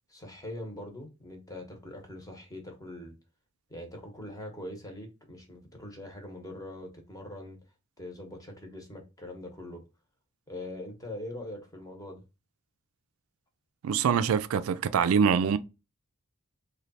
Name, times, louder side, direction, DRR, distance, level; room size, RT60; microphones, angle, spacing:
voice 1, 0.1-3.1 3.7-7.6 8.0-9.8 10.5-12.2, left 1 dB, 15° left, 0.9 m, -42 dB
voice 2, 13.8-15.6, right 7 dB, 70° right, 0.3 m, -24 dB
3.2 x 2.3 x 4.0 m
head